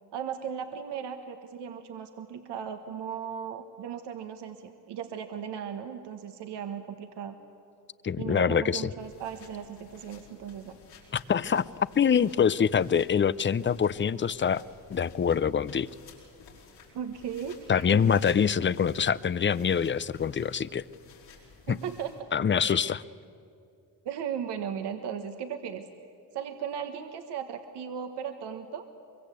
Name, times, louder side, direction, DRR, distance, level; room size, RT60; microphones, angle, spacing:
voice 1, 0.1-7.4 8.2-10.7 16.9-18.1 21.7-22.1 22.7-23.0 24.0-25.9 26.3-28.9, right 8 dB, 75° right, 7 dB, 1.4 m, -37 dB
voice 2, 8.0-8.9 11.1-14.6 14.9-15.9 17.7-20.8 21.7-21.8 22.3-23.0, left 7 dB, 30° left, 18 dB, 0.6 m, -25 dB
sound 1, 9.0-22.2, left 5 dB, 85° left, 6.0 m, -54 dB
23.5 x 23.0 x 8.2 m, 2.6 s
cardioid pair, 85°, 42 cm